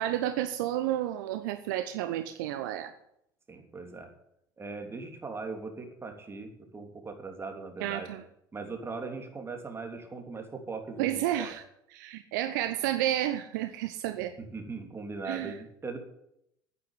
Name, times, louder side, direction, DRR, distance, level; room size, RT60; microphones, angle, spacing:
voice 1, 0.0-2.9 7.8-8.2 11.0-11.6 11.9-14.3 15.3-15.5, right 12 dB, 70° right, 10 dB, 0.8 m, -31 dB
voice 2, 3.5-4.1 4.6-8.1 8.5-11.5 14.4-16.0, right 4 dB, 20° right, 4 dB, 3.3 m, -39 dB
10.0 x 9.6 x 9.5 m, 0.77 s
figure-of-eight pair, 65°, 11 cm